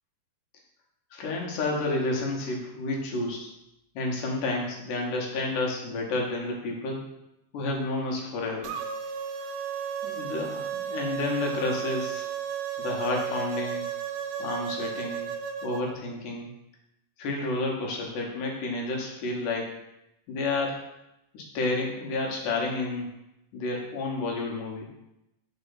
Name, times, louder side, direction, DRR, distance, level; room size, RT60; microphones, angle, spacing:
voice 1, 1.1-3.5 4.0-7.1 7.5-8.8 10.0-12.3 12.8-13.8 14.4-15.3 15.6-16.5 17.2-19.8 20.3-20.9 21.3-23.1 23.5-24.9, left 2 dB, 80° left, -1 dB, 2.7 m, -30 dB
sound 1, 8.6-15.8, right 7 dB, 85° right, 2.1 m, -33 dB
4.7 x 4.5 x 5.6 m, 0.87 s
omnidirectional pair, 3.8 m